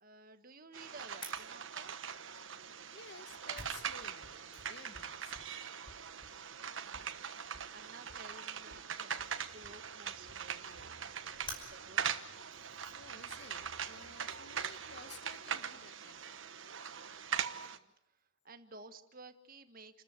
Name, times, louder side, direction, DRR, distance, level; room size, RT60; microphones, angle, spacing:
voice 1, 0.0-2.2 6.8-11.0 11.7-12.0 17.5-20.0, right 3 dB, 40° right, 9 dB, 1.6 m, -55 dB
sound 1, 0.7-17.8, right 7 dB, 65° right, 1.3 m, -42 dB
Fire, 1.2-13.7, left 2 dB, 25° left, 5.5 m, -55 dB
voice 2, 2.7-5.7 12.9-16.2, left 4 dB, 50° left, 10 dB, 1.7 m, -55 dB
sound 2, 9.3-15.8, right 1 dB, 70° left, 6.0 m, -66 dB
30.0 x 14.0 x 9.7 m, 0.75 s
head